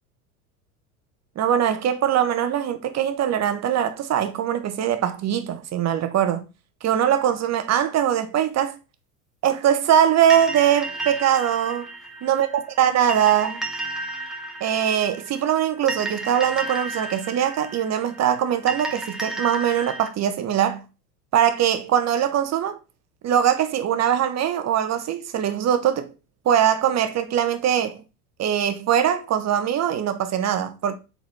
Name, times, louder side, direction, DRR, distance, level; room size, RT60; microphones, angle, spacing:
voice 1, 1.3-6.4 6.8-8.8 9.4-11.9 12.2-12.5 12.8-13.6 14.6-20.8 21.3-22.8 23.2-26.1 26.4-28.0 28.4-30.9, right 9 dB, 35° right, 1.3 m, -22 dB
sound 1, 10.3-20.1, right 2 dB, ahead, 1.7 m, -33 dB
7.6 x 4.2 x 4.2 m
figure-of-eight pair, 80°, 46 cm